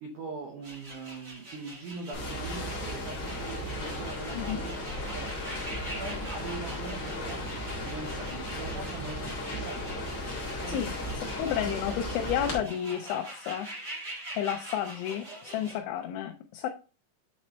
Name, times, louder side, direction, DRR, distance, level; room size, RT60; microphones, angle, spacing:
voice 1, 0.0-10.3 10.6-10.8, right 3 dB, 75° right, 0 dB, 1.8 m, -42 dB
sound 1, 0.6-15.8, right 1 dB, 35° right, 1.7 m, -44 dB
sound 2, 2.1-12.6, left 1 dB, 65° left, 1.1 m, -35 dB
voice 2, 4.3-4.6 10.7-10.9 11.4-13.7 14.4-16.7, left 10 dB, 85° left, 4 dB, 3.0 m, -31 dB
8.3 x 4.3 x 3.1 m, 0.33 s
omnidirectional pair, 5.4 m